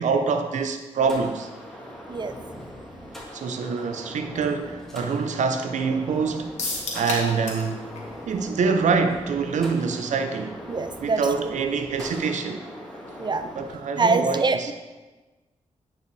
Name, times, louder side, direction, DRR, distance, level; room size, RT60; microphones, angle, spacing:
voice 1, 0.0-1.5 3.3-6.6 6.9-7.8 8.3-10.6 11.0-12.6 13.4-14.7, right 5 dB, 80° right, 7 dB, 0.6 m, -25 dB
sound 1, 1.0-13.8, equal, 5° left, 1.7 m, -41 dB
sound 2, 6.6-7.7 8.0-8.1 8.4-8.5, left 3 dB, 70° left, 1.6 m, -30 dB
voice 2, 10.7-11.2 13.2-13.4 14.0-14.7, right 3 dB, 40° right, 9 dB, 0.4 m, -24 dB
9.1 x 5.5 x 3.3 m, 1.2 s
cardioid pair, 70°, 12 cm